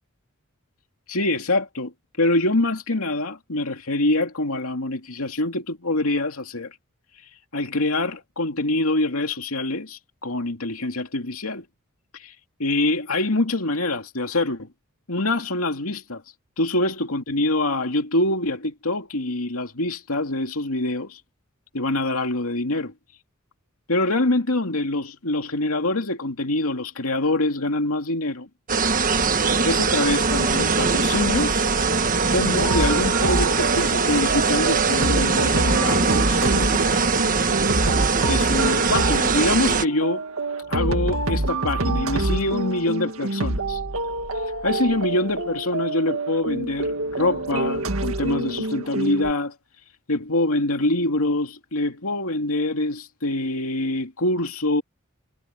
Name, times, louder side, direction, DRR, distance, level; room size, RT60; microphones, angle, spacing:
voice 1, 1.1-6.8 7.5-11.6 12.1-12.3 12.6-14.7 15.1-16.2 16.6-21.2 21.7-22.9 23.9-28.5 29.6-31.7 32.3-36.9 38.2-40.3 40.7-43.8 44.6-49.5 50.1-54.8, left 2 dB, 90° left, 2.4 m, -25 dB
sound 1, 28.7-39.8, right 4 dB, 40° right, 1.4 m, -21 dB
sound 2, 32.6-49.3, right 2 dB, 75° right, 1.8 m, -26 dB
head